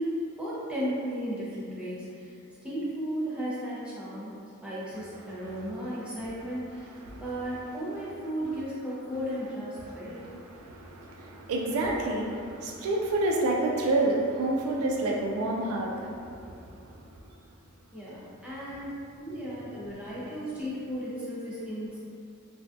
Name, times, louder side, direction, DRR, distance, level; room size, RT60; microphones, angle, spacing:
voice 1, 0.0-2.3 2.6-4.3 4.6-10.2 17.9-22.0, equal, 5° right, -9 dB, 0.5 m, -35 dB
voice 2, 10.1-16.2, right 2 dB, 70° right, -1 dB, 0.3 m, -28 dB
2.5 x 2.2 x 2.3 m, 2.4 s
head